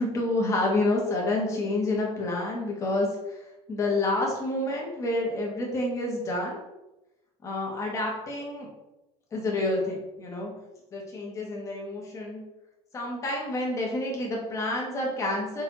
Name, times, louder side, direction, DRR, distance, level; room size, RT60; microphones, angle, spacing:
voice 1, 0.0-3.4 3.7-6.6 7.4-8.7 9.3-10.5 10.9-12.4 12.9-15.6, left 2 dB, 25° left, -2 dB, 1.9 m, -28 dB
6.1 x 4.8 x 4.2 m, 0.97 s
cardioid pair, 155°, 12 cm